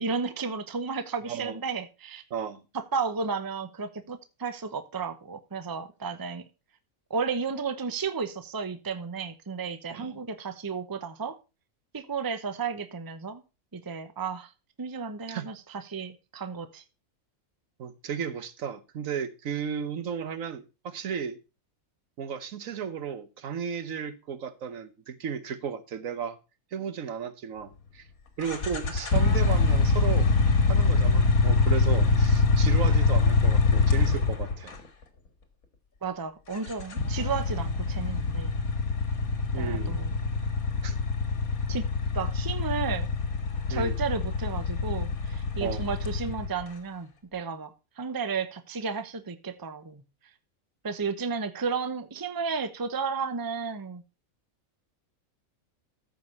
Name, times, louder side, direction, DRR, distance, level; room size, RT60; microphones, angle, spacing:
voice 1, 0.0-2.2 2.7-6.4 7.1-11.4 11.9-13.4 13.7-14.5 14.8-16.8 36.0-38.5 39.5-40.1 41.7-41.9 42.1-43.1 43.7-47.7 48.0-50.0 50.8-54.0, right 5 dB, 20° right, 0.7 m, -33 dB
voice 2, 1.3-1.6 2.3-2.6 9.9-10.2 15.3-15.5 17.8-21.4 22.2-26.4 26.7-28.1 28.4-30.3 30.7-34.7 39.5-40.0 40.8-41.0 43.7-44.0 45.6-45.9, right 7 dB, 70° right, 1.3 m, -34 dB
sound 1, 28.4-34.8 36.6-46.6, left 3 dB, 80° left, 2.1 m, -24 dB
13.5 x 5.3 x 5.3 m
omnidirectional pair, 1.5 m